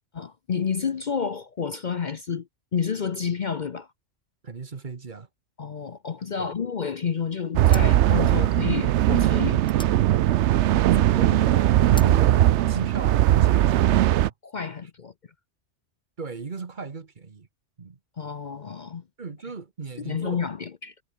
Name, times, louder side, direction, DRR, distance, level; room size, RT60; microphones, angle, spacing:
voice 1, 0.1-3.9 5.6-9.7 14.4-15.1 18.2-19.0 20.0-20.9, left 6 dB, 45° left, 0.8 m, -30 dB
voice 2, 4.4-5.3 6.4-6.5 10.9-12.4 12.7-14.3 16.2-17.5 17.8-18.0 19.2-20.5, right 4 dB, 45° right, 1.3 m, -36 dB
sound 1, 7.0-7.2 7.6-11.0 11.4-12.2, left 1 dB, 5° left, 0.8 m, -45 dB
sound 2, 7.5-14.3, right 13 dB, 75° right, 0.9 m, -19 dB
omnidirectional pair, 1.2 m